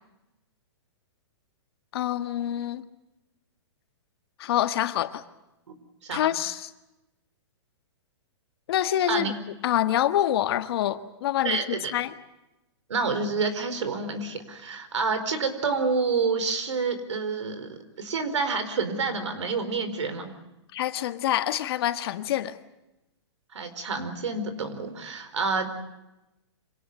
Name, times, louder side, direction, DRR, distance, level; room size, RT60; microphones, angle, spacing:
voice 1, 1.9-2.8 4.4-5.2 6.1-6.7 8.7-9.3 9.6-12.1 20.7-22.6, left 12 dB, 55° left, 10 dB, 1.7 m, -26 dB
voice 2, 11.4-11.9 12.9-20.3 23.5-25.7, right 4 dB, 85° right, 10 dB, 4.6 m, -28 dB
26.0 x 18.5 x 9.4 m, 0.96 s
hypercardioid pair, 145°, 15 cm